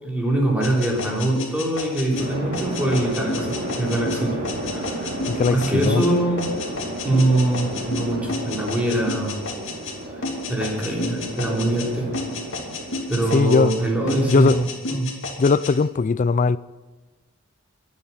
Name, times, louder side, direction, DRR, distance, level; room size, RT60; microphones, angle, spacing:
voice 1, 0.0-4.4 4.7-5.0 5.5-6.4 7.0-9.3 10.5-12.1 13.1-15.1, right 1 dB, 5° right, 3.7 m, -23 dB
sound 1, 0.6-10.0 10.2-11.9 12.1-13.8 14.1-15.7, left 2 dB, 65° left, 2.5 m, -31 dB
sound 2, 2.1-13.6, right 1 dB, 40° right, 3.6 m, -32 dB
voice 2, 5.3-6.0 13.3-13.7 14.3-14.6 15.4-16.6, left 4 dB, 35° left, 0.4 m, -19 dB
22.5 x 8.6 x 5.8 m
head